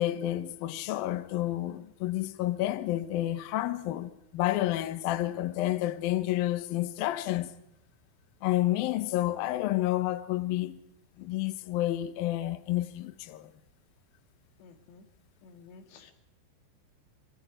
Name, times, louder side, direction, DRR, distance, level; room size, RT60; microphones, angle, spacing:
voice 1, 0.0-7.5 8.4-10.8 11.2-13.5, left 15 dB, 85° left, 2.0 m, -30 dB
voice 2, 14.6-15.1 15.4-16.1, left 4 dB, 65° left, 3.9 m, -53 dB
26.0 x 22.0 x 5.0 m
omnidirectional pair, 5.7 m